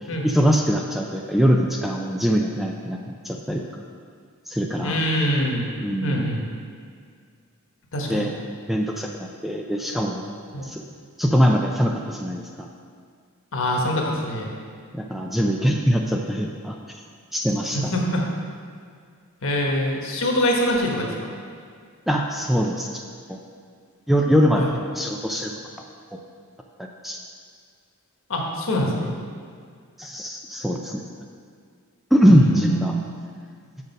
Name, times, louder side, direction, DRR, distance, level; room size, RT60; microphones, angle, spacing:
voice 1, 0.2-3.0 3.2-3.6 4.5-5.0 5.8-6.2 8.1-8.3 8.7-10.2 10.6-10.8 11.2-12.7 14.9-16.7 17.3-17.9 22.1-23.0 23.3-23.4 24.1-24.6 24.9-25.5 27.0-27.2 30.0-31.0 32.1-32.9, equal, ahead, 1 dB, 0.3 m, -22 dB
voice 2, 4.8-5.7 6.0-6.4 7.9-8.3 10.5-10.7 13.5-14.5 17.7-18.2 19.4-21.3 24.5-24.7 28.3-29.1 32.3-32.9, equal, 65° left, -1 dB, 1.2 m, -24 dB
6.6 x 6.2 x 5.3 m, 2.1 s
head